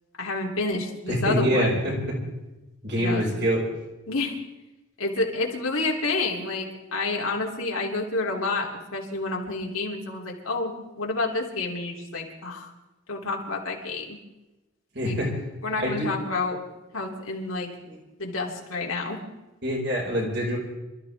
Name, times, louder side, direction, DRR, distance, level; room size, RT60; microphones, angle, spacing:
voice 1, 0.2-1.8 3.0-3.2 4.1-4.4 5.0-12.7 13.1-14.2 15.0-15.2 15.6-16.6 16.9-17.7 18.2-19.2, left 3 dB, 85° left, -1 dB, 3.2 m, -29 dB
voice 2, 1.1-2.2 2.8-3.6 14.9-15.3 15.7-16.1 17.9-18.0 19.6-20.6, equal, 50° right, -2 dB, 5.5 m, -25 dB
27.0 x 14.0 x 3.6 m, 1.0 s
head